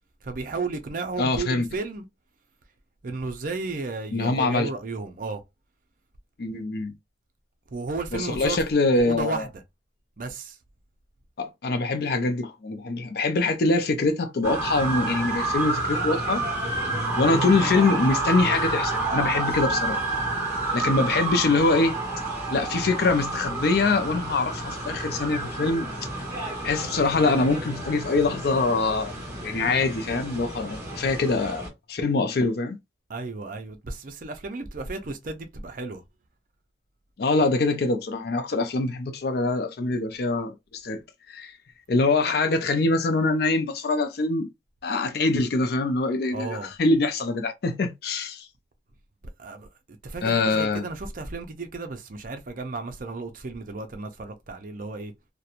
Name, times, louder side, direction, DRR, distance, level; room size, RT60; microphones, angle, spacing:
voice 1, 0.2-2.1 3.0-5.4 7.7-8.6 9.0-9.6 10.2-10.6 16.9-17.1 33.1-36.0 46.3-46.7 49.4-55.1, right 3 dB, 50° right, 0.5 m, -33 dB
voice 2, 1.2-1.7 4.1-4.7 6.4-6.9 8.1-9.5 11.4-16.7 17.2-20.0 20.7-21.9 22.5-25.9 26.6-29.1 29.4-32.8 37.2-41.0 41.3-41.5 41.9-44.5 44.8-48.5 50.2-50.8, left 3 dB, 60° left, 0.4 m, -24 dB
sound 1, 14.4-31.7, right 2 dB, 15° right, 1.1 m, -29 dB
2.9 x 2.1 x 2.4 m
head